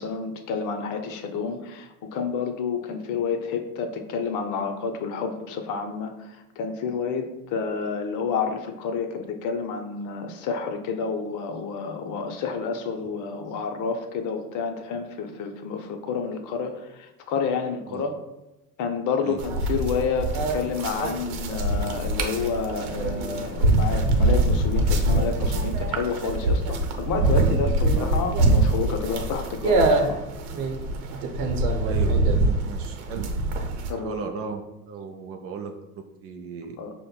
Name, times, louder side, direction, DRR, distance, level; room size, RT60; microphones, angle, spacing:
voice 1, 0.0-18.1 18.8-30.2 33.9-34.2 36.8-36.9, left 5 dB, 45° left, 6 dB, 0.6 m, -29 dB
sound 1, 19.4-33.9, right 2 dB, 60° right, 0.8 m, -23 dB
voice 2, 31.8-33.3 33.9-34.6 34.9-36.8, right 5 dB, 35° right, 4 dB, 0.4 m, -36 dB
6.3 x 2.1 x 2.2 m, 0.98 s
hypercardioid pair, 70°, 44 cm